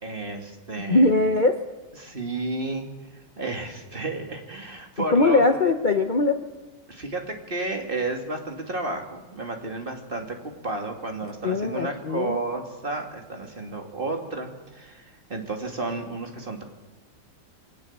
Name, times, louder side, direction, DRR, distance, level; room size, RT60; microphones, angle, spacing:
voice 1, 0.0-1.1 2.0-2.9 3.4-5.4 6.9-16.6, right 2 dB, 25° right, 3 dB, 2.4 m, -32 dB
voice 2, 0.9-1.6 5.1-6.4 11.4-12.4, left 2 dB, 55° left, 6 dB, 0.5 m, -21 dB
22.5 x 18.5 x 7.3 m, 1.2 s
omnidirectional pair, 2.3 m